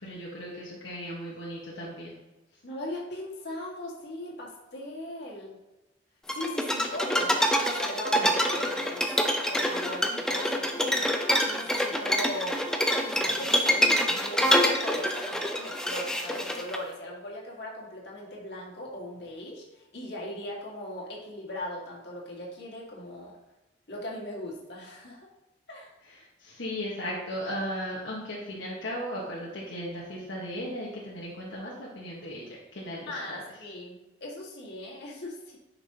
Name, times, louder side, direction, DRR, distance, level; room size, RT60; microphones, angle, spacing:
voice 1, 0.0-2.1 8.1-8.3 26.1-32.4 32.7-33.4, equal, 75° left, -5 dB, 1.4 m, -36 dB
voice 2, 2.6-5.6 6.3-11.1 11.4-12.6 12.9-23.4 23.9-25.2 25.7-25.9 33.1-35.6, left 1 dB, 60° left, -3 dB, 2.0 m, -39 dB
sound 1, 6.3-16.8, equal, 5° left, 0.6 m, -26 dB
10.5 x 5.9 x 2.9 m, 1.0 s
head